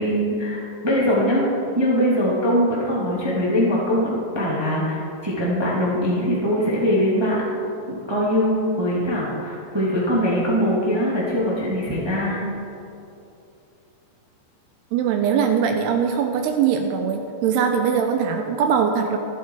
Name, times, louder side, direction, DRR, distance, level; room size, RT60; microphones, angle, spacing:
voice 1, 0.0-1.5 1.7-7.4 7.9-12.5, equal, 40° right, -6 dB, 0.3 m, -22 dB
voice 2, 14.9-19.2, right 7 dB, 80° right, 5 dB, 2.6 m, -21 dB
23.5 x 7.9 x 4.7 m, 2.7 s
omnidirectional pair, 5.2 m